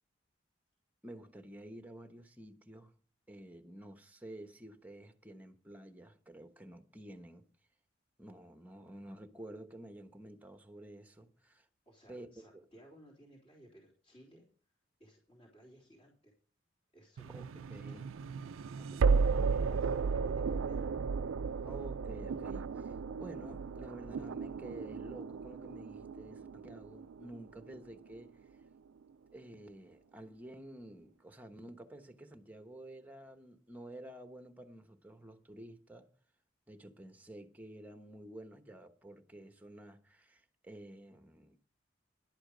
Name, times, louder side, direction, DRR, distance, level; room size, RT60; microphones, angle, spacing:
voice 1, 1.0-2.9 3.3-7.4 8.2-11.7 12.1-12.3 17.3-18.1 19.0-19.2 19.5-19.8 21.6-28.5 29.3-36.1 36.7-41.6, right 1 dB, 10° right, 1.1 m, -51 dB
voice 2, 11.9-14.5 15.0-16.3 16.9-18.0 18.8-20.9 21.4-21.7, equal, 30° left, 3.5 m, -59 dB
sound 1, 17.2-28.2, right 5 dB, 85° right, 0.4 m, -34 dB
11.5 x 8.8 x 5.0 m
head